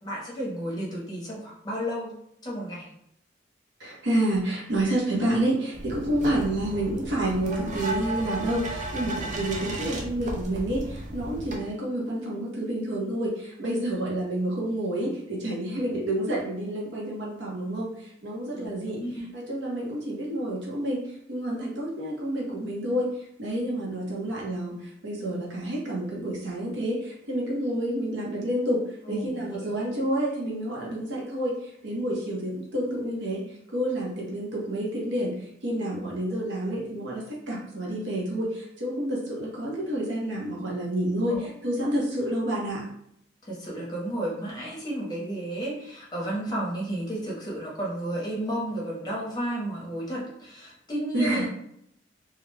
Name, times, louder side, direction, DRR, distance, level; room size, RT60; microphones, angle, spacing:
voice 1, 0.0-2.1 2.4-2.9 18.5-19.3 29.1-29.7 41.3-41.5 41.8-42.0 43.5-51.5, right 1 dB, 20° left, -4 dB, 0.8 m, -32 dB
voice 2, 3.8-19.0 19.3-21.0 21.3-23.1 23.4-28.8 29.1-33.4 33.7-42.8 51.1-51.5, right 1 dB, 60° right, -4 dB, 0.8 m, -29 dB
sound 1, 5.7-11.6, right 2 dB, 40° right, 0.4 m, -34 dB
2.4 x 2.2 x 3.1 m, 0.72 s
head